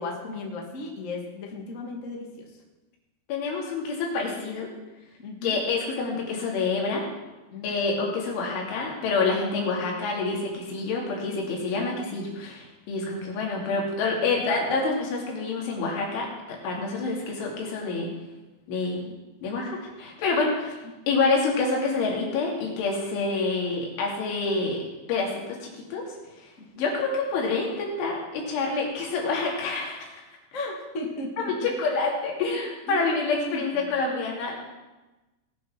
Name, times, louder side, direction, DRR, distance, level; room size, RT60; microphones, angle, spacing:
voice 1, 0.0-2.4 5.2-5.6 7.5-7.7 13.0-13.1 26.6-26.9 30.5-31.7 32.9-33.6, left 2 dB, 45° left, 0 dB, 0.9 m, -35 dB
voice 2, 3.3-4.7 5.4-7.1 7.6-18.1 18.7-19.1 19.4-20.8 21.1-24.8 25.1-26.0 26.8-30.1 31.4-34.7, left 3 dB, 90° left, -1 dB, 5.0 m, -27 dB
19.5 x 6.7 x 6.1 m, 1.1 s
omnidirectional pair, 5.3 m